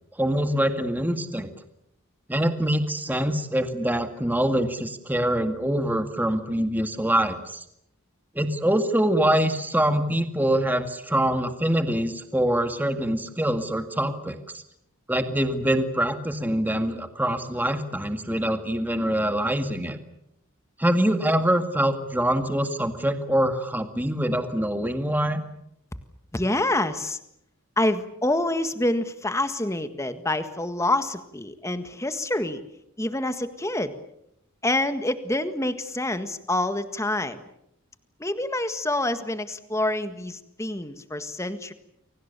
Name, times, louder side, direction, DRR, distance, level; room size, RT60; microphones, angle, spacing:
voice 1, 0.2-1.5 2.3-7.6 8.4-14.6 15.1-20.0 20.8-25.4, right 1 dB, 10° right, 7 dB, 2.0 m, -24 dB
voice 2, 26.3-27.2 27.8-32.6 33.0-34.0 34.6-37.4 38.2-41.7, left 1 dB, 15° left, 10 dB, 1.7 m, -27 dB
29.5 x 24.0 x 6.9 m, 0.78 s
head